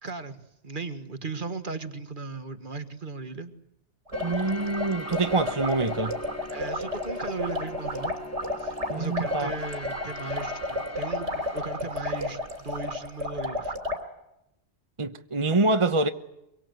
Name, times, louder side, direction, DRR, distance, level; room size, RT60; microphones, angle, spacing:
voice 1, 0.0-3.5 6.5-8.1 8.6-13.7, right 3 dB, 50° right, 1.7 m, -37 dB
sound 1, 4.1-12.9, left 2 dB, 15° left, 1.3 m, -41 dB
sound 2, 4.1-14.0, left 1 dB, 85° right, 3.5 m, -32 dB
voice 2, 4.2-6.2 8.9-9.5 15.0-16.1, right 3 dB, 30° right, 1.0 m, -25 dB
25.0 x 23.0 x 8.0 m
omnidirectional pair, 1.2 m